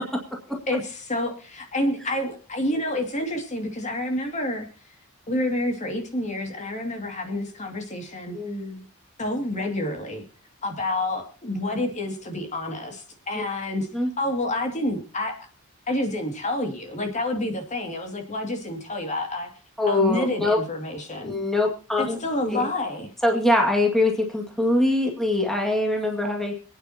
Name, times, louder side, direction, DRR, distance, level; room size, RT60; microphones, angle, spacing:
voice 1, 0.7-4.7 5.3-8.4 9.2-10.2 10.6-13.9 14.2-15.4 15.9-19.5 19.9-21.3 22.0-23.1, left 1 dB, 35° left, 3 dB, 2.4 m, -28 dB
voice 2, 8.3-8.8 13.4-13.5 13.9-14.1 19.8-20.6 21.2-22.2 22.5-22.7 23.2-26.5, left 2 dB, ahead, 0 dB, 2.1 m, -23 dB
27.5 x 9.4 x 2.9 m, 0.38 s
head